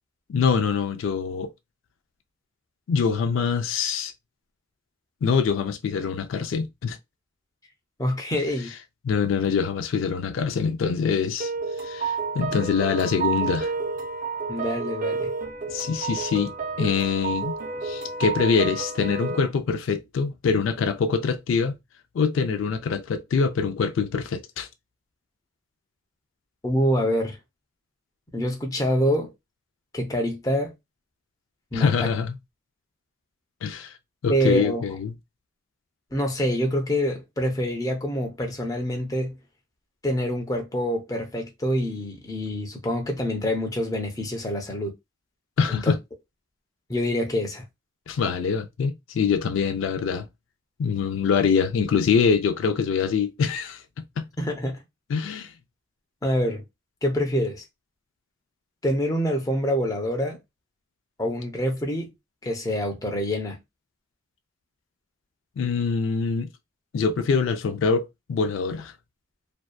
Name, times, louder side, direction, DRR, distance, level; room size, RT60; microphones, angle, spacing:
voice 1, 0.3-1.5 2.9-4.1 5.2-7.0 9.0-11.5 11.8-13.7 15.7-16.5 16.8-17.5 17.8-21.8 22.1-24.7 31.7-32.4 33.6-33.9 34.2-35.1 45.6-46.0 48.1-50.3 50.8-53.8 54.2-54.3 55.1-55.5 65.6-66.5 66.9-68.9, left 5 dB, 80° left, 0.3 m, -24 dB
voice 2, 8.0-8.7 14.5-15.3 26.6-27.4 28.3-29.3 29.9-30.7 31.7-32.1 34.3-34.8 36.1-39.4 40.0-44.9 45.7-46.0 46.9-47.7 54.4-54.8 56.2-56.6 57.0-57.6 58.8-60.4 61.2-62.1 62.4-63.6, equal, 20° left, 0.5 m, -26 dB
sound 1, 11.4-19.5, right 4 dB, 40° right, 0.4 m, -30 dB
2.6 x 2.2 x 2.2 m
head